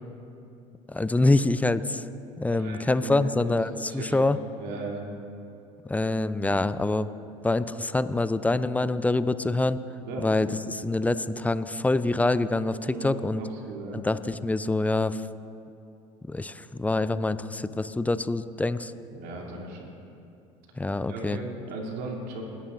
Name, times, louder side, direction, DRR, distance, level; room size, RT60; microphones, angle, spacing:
voice 1, 0.9-2.0 2.4-4.4 5.9-7.1 7.4-9.8 10.2-13.4 13.9-15.2 16.3-18.9 20.8-21.4, left 2 dB, 10° left, 14 dB, 0.4 m, -25 dB
voice 2, 2.5-3.6 3.8-4.3 4.6-5.0 10.0-10.3 12.8-14.0 19.1-19.9 21.1-22.4, right 2 dB, 60° right, -2 dB, 2.8 m, -37 dB
20.0 x 11.0 x 2.5 m, 2.6 s
hypercardioid pair, 70°, 17 cm